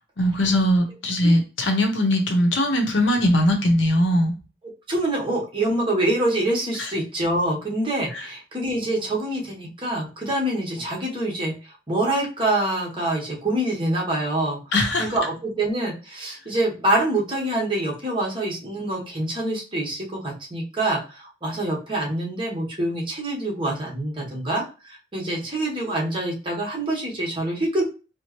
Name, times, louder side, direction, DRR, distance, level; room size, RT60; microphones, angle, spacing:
voice 1, 0.2-4.3 6.8-6.9 8.1-8.2 14.7-15.1, left 1 dB, 85° left, 5 dB, 0.8 m, -20 dB
voice 2, 4.9-11.5 11.9-14.6 15.0-27.8, right 1 dB, 30° right, -2 dB, 1.0 m, -25 dB
4.4 x 2.0 x 3.0 m, 0.33 s
head